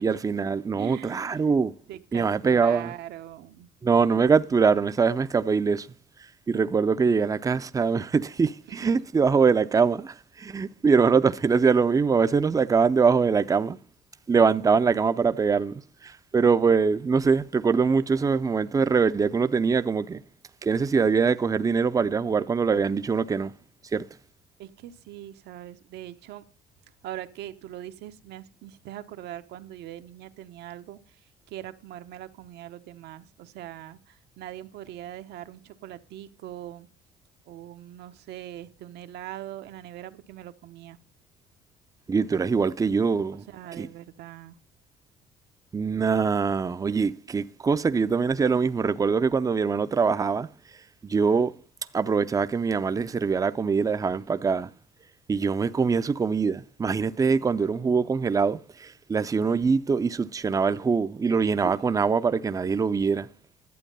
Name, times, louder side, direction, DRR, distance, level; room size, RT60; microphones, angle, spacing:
voice 1, 0.0-1.7 2.1-2.9 3.8-5.9 6.5-13.8 14.3-20.2 20.6-23.5 23.9-24.0 42.1-43.4 43.8-43.9 45.7-50.5 51.0-51.5 51.9-54.7 55.3-63.3, right 5 dB, 20° right, 0.5 m, -23 dB
voice 2, 0.8-1.5 1.9-3.7 8.7-8.9 24.6-26.4 27.0-36.9 37.5-41.0 43.3-44.6 61.6-62.0, right 12 dB, 80° right, 1.0 m, -41 dB
11.5 x 8.2 x 5.4 m
cardioid pair, 110°, 17 cm